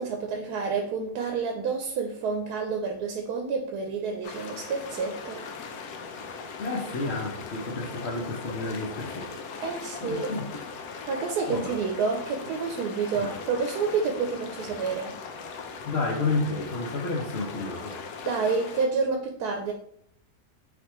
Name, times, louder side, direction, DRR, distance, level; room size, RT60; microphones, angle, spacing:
voice 1, 0.0-5.4 9.6-10.3 11.1-15.2 18.2-19.7, right 5 dB, 85° right, 2 dB, 1.1 m, -29 dB
sound 1, 4.2-18.9, left 5 dB, 90° left, 1.2 m, -39 dB
voice 2, 6.6-9.3 10.0-10.5 11.5-11.8 13.1-13.3 15.8-18.0, left 3 dB, 60° left, -2 dB, 0.8 m, -30 dB
4.1 x 3.4 x 3.0 m, 0.72 s
omnidirectional pair, 1.6 m